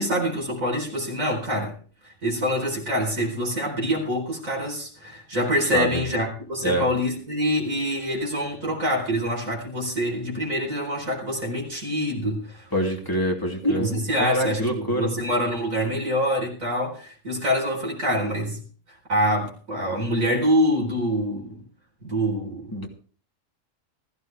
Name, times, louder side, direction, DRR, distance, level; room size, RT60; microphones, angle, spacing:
voice 1, 0.0-1.8 2.0-12.7 13.6-18.6 19.1-21.6 22.0-22.8, equal, 85° right, -1 dB, 4.7 m, -25 dB
voice 2, 5.7-6.0 6.6-6.9 12.7-13.9 14.2-15.1 22.7-22.9, equal, 15° left, 0 dB, 2.8 m, -25 dB
15.5 x 15.0 x 3.4 m, 0.41 s
omnidirectional pair, 1.4 m